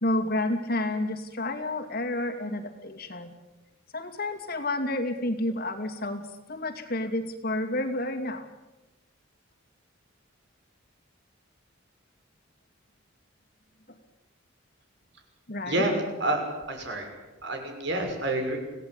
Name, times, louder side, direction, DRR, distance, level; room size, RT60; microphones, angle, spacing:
voice 1, 0.0-3.3 3.9-8.5 13.9-14.0 15.5-15.9, left 1 dB, 50° left, 4 dB, 2.7 m, -30 dB
voice 2, 15.7-16.4 16.7-17.1 17.4-18.6, right 1 dB, 60° right, 4 dB, 6.1 m, -28 dB
27.0 x 18.0 x 8.9 m, 1.1 s
head